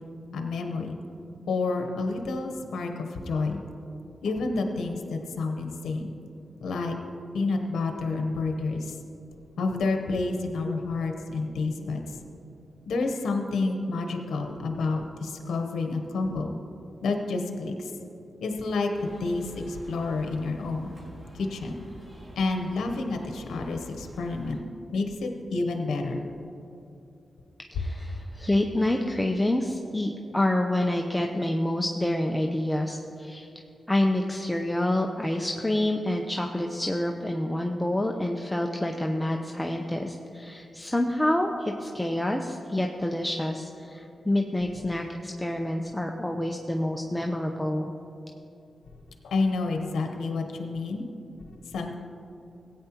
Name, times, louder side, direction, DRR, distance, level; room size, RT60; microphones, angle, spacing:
voice 1, 0.3-1.0 1.5-3.6 4.2-6.2 6.6-7.0 7.3-8.9 9.6-12.0 12.9-16.6 17.0-17.9 18.4-18.9 19.2-20.9 21.3-21.8 22.4-24.6 24.9-26.3 49.2-51.0 51.7-52.0, left 3 dB, 90° left, 4 dB, 0.9 m, -29 dB
sound 1, 18.9-24.6, right 1 dB, 40° right, 2.8 m, -47 dB
voice 2, 27.7-33.5 33.9-47.9, left 1 dB, 15° left, 2 dB, 0.7 m, -27 dB
16.0 x 9.1 x 3.0 m, 2.7 s
cardioid pair, 50°, 0 cm